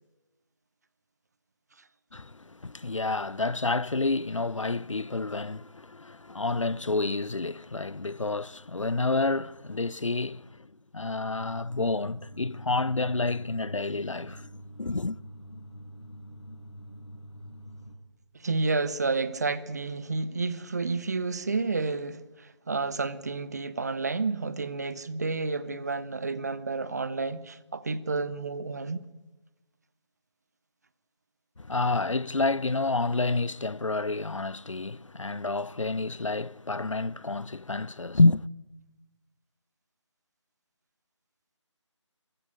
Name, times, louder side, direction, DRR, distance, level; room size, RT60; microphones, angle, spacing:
voice 1, 2.1-14.5 14.8-15.2 31.6-38.5, left 3 dB, 80° left, 0.6 m, -29 dB
sound 1, 11.3-18.0, equal, 60° left, 5.8 m, -46 dB
voice 2, 18.3-29.1, right 3 dB, 35° right, 0.9 m, -30 dB
23.0 x 15.5 x 9.9 m
figure-of-eight pair, 160°, 16 cm